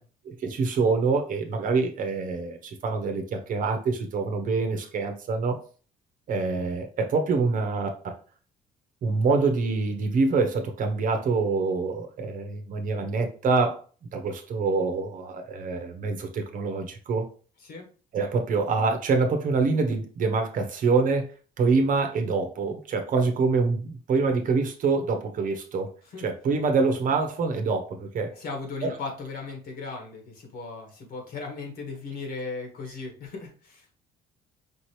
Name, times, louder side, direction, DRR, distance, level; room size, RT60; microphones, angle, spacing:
voice 1, 0.3-5.6 6.3-8.1 9.0-13.8 14.1-17.3 18.1-25.9 26.2-28.3 28.8-29.0, right 4 dB, 50° right, 6 dB, 1.0 m, -25 dB
voice 2, 28.4-33.9, left 4 dB, 65° left, 2 dB, 1.8 m, -37 dB
5.1 x 2.9 x 3.2 m, 0.39 s
cardioid pair, 110°, 17 cm